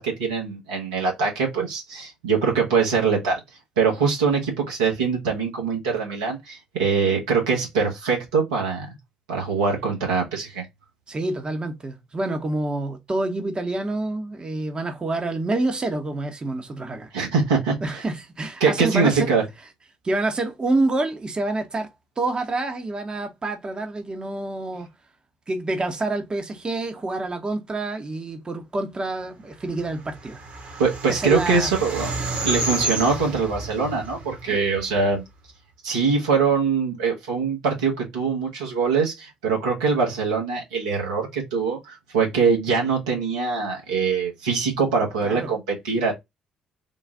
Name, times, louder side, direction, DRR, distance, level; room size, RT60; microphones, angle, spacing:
voice 1, 0.0-3.4 3.8-8.9 9.3-10.6 17.1-18.0 18.6-19.4 30.8-32.1 32.4-35.2 35.8-46.1, right 5 dB, 80° right, 1.3 m, -23 dB
voice 2, 11.1-17.1 17.8-19.4 20.0-24.9 25.5-30.4 31.1-31.7 34.5-34.6 45.2-45.5, right 2 dB, 30° right, 0.9 m, -27 dB
sound 1, 29.8-35.2, right 2 dB, 50° right, 1.5 m, -31 dB
3.8 x 2.4 x 3.5 m
figure-of-eight pair, 45°, 3 cm